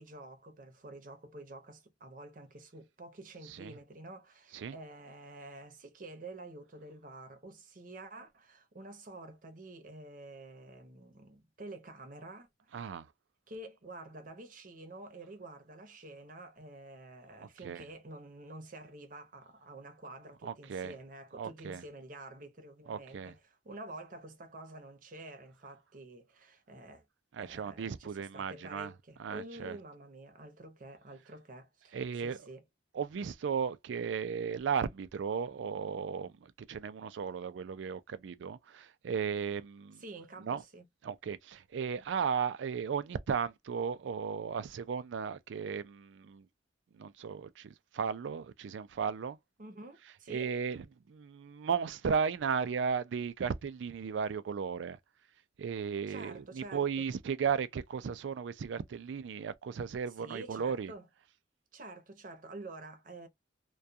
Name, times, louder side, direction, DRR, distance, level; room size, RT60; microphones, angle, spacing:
voice 1, 0.0-12.9 13.5-27.0 27.4-32.6 40.0-40.9 49.6-50.5 56.1-57.1 60.2-61.1 61.7-63.3, right 2 dB, 45° right, 0.7 m, -49 dB
voice 2, 12.7-13.1 17.6-17.8 20.4-20.9 21.4-21.8 22.9-23.3 27.3-28.9 29.2-29.8 31.9-32.4 32.9-40.0 40.4-40.6 41.0-46.4 47.0-49.4 50.3-55.0 55.6-60.9, right 6 dB, 75° right, 0.4 m, -35 dB
2.3 x 2.3 x 2.6 m
head